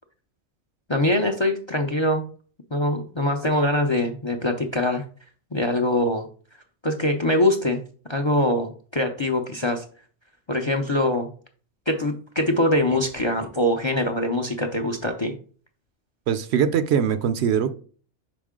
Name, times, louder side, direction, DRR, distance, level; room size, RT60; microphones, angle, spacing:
voice 1, 0.9-2.3 2.7-5.0 5.5-6.3 6.8-7.8 8.1-9.8 10.5-11.3 11.9-15.3, left 1 dB, 35° left, 0.5 m, -23 dB
voice 2, 16.3-17.7, right 8 dB, 70° right, 0.8 m, -22 dB
5.6 x 5.0 x 3.6 m
omnidirectional pair, 1.2 m